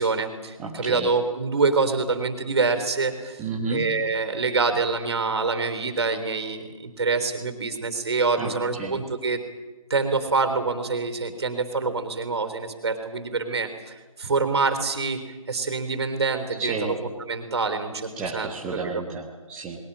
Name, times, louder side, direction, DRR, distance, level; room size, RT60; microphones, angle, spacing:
voice 1, 0.0-3.4 3.7-9.4 9.9-13.7 14.2-15.2 15.5-17.0 17.3-18.5, right 4 dB, 45° right, 9 dB, 3.7 m, -25 dB
voice 2, 0.6-1.1 3.4-4.0 8.4-9.0 16.6-17.0 18.2-19.8, right 3 dB, 5° right, -3 dB, 1.1 m, -31 dB
21.5 x 18.0 x 9.9 m, 1.2 s
figure-of-eight pair, 155°, 18 cm